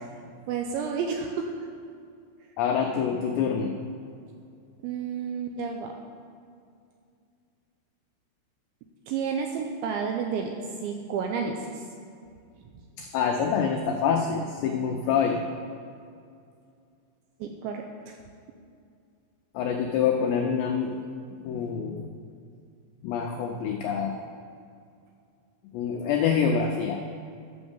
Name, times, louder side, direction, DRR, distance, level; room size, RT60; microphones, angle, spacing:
voice 1, 0.5-1.5 4.8-5.9 9.1-10.5 10.8-11.8 17.4-17.8, right 6 dB, 85° right, 3 dB, 2.6 m, -30 dB
voice 2, 2.6-3.7 13.0-15.4 19.6-21.0 21.4-22.1 23.0-24.2 25.7-27.0, left 7 dB, 85° left, 2 dB, 2.5 m, -26 dB
12.0 x 6.2 x 7.1 m, 2.4 s
omnidirectional pair, 5.8 m